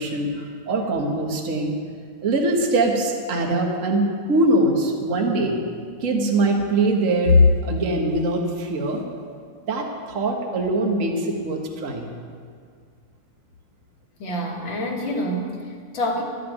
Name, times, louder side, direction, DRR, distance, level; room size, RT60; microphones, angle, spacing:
voice 1, 0.0-1.7 2.2-5.6 6.0-9.0 9.7-12.1, right 1 dB, 35° right, 1 dB, 1.3 m, -22 dB
voice 2, 14.2-16.2, equal, 45° left, 0 dB, 2.1 m, -27 dB
13.5 x 7.7 x 9.3 m, 2.1 s
omnidirectional pair, 3.4 m